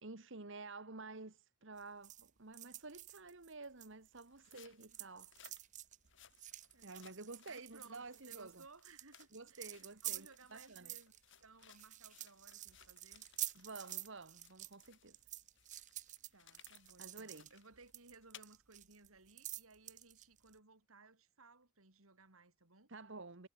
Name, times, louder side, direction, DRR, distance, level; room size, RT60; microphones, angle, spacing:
voice 1, 0.0-5.3 6.8-8.6 9.3-10.9 13.5-15.2 17.0-17.5 22.9-23.5, right 3 dB, 60° right, 1.7 m, -51 dB
sound 1, 1.8-4.5 4.8-20.5, right 14 dB, 35° right, 0.6 m, -49 dB
sound 2, 4.3-14.1 14.4-18.5, left 9 dB, 60° left, 6.8 m, -64 dB
voice 2, 4.5-5.0 6.7-7.2 7.5-13.2 16.3-22.9, right 3 dB, 85° right, 4.3 m, -62 dB
head